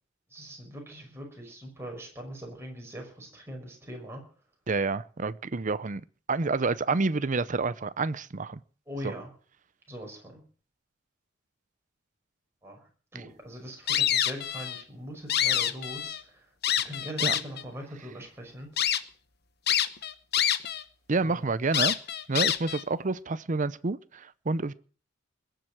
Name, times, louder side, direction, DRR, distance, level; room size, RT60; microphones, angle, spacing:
voice 1, 0.3-4.2 8.9-9.3 9.9-10.4 12.6-12.8 13.1-16.5 16.8-18.9 21.2-21.5, equal, 15° right, 5.9 m, -41 dB
voice 2, 4.7-8.6 9.0-9.1 17.2-17.4 21.1-22.0 22.3-24.7, right 3 dB, 40° right, 0.7 m, -29 dB
sound 1, 13.9-14.8 15.1-16.2 16.6-17.6 18.2-18.3 18.8-19.0 19.7-20.8 21.1-21.2 21.7-22.8, left 10 dB, 50° left, 1.0 m, -26 dB
21.5 x 7.7 x 7.6 m
head